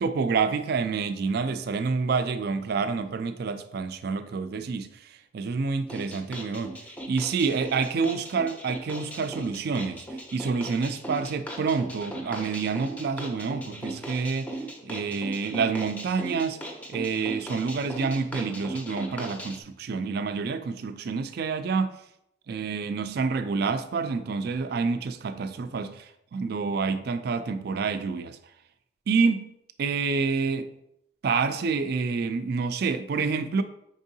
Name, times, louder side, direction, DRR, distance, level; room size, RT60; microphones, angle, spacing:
voice 1, 0.0-6.8 7.1-14.6 14.8-16.6 16.9-21.9 22.5-28.4 29.1-29.5 29.8-30.7 31.2-33.6, right 5 dB, 55° right, 10 dB, 0.3 m, -28 dB
sound 1, 5.9-19.6, right 1 dB, 10° left, 0.5 m, -38 dB
5.3 x 3.6 x 2.7 m, 0.78 s
head